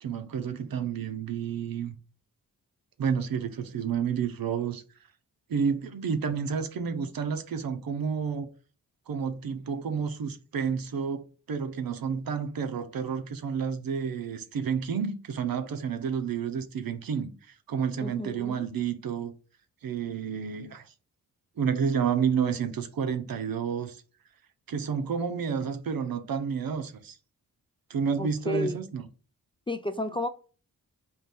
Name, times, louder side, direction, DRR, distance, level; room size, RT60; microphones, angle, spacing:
voice 1, 0.0-2.0 3.0-4.8 5.5-8.5 9.1-19.3 19.8-20.9 21.6-24.0 24.7-27.2 27.9-29.1, right 6 dB, 65° right, 0.7 m, -30 dB
voice 2, 18.0-18.6 28.2-28.8 29.7-30.3, left 1 dB, 15° left, 0.4 m, -32 dB
3.7 x 2.6 x 4.1 m
cardioid pair, 55°, 37 cm